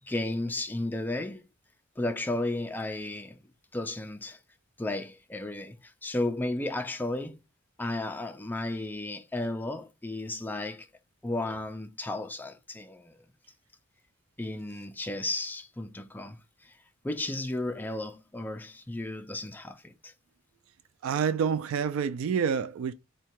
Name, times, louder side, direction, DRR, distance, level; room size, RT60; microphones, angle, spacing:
voice 1, 0.0-1.4 2.0-3.4 3.7-4.4 4.8-7.4 7.8-10.9 11.2-13.2 14.4-16.7 17.0-20.1, left 2 dB, 10° left, 0.4 m, -34 dB
voice 2, 21.0-22.9, right 7 dB, 80° right, 0.3 m, -28 dB
3.6 x 2.2 x 4.4 m
head